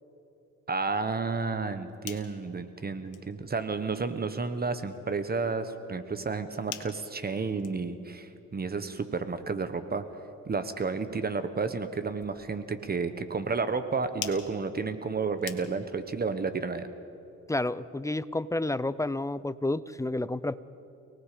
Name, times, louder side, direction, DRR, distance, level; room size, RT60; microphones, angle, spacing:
voice 1, 0.7-10.0 10.4-16.9, right 4 dB, 30° right, 10 dB, 1.3 m, -31 dB
sound 1, 1.8-16.1, left 11 dB, 80° left, 1.7 m, -49 dB
voice 2, 17.5-20.6, left 2 dB, 10° left, 16 dB, 0.6 m, -30 dB
29.5 x 19.0 x 5.1 m, 2.9 s
cardioid pair, 90°, 30 cm